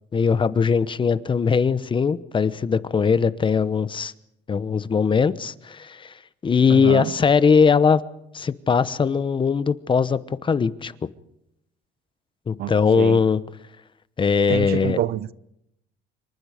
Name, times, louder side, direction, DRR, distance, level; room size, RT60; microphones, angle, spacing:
voice 1, 0.1-4.1 4.5-6.1 6.4-8.0 8.3-10.9 12.5-13.4 14.2-15.0, left 6 dB, 30° left, 1.0 m, -20 dB
voice 2, 6.7-7.1 12.6-13.2 14.5-15.3, right 13 dB, 65° right, 0.8 m, -27 dB
27.0 x 24.5 x 5.1 m
cardioid pair, 110°, 17 cm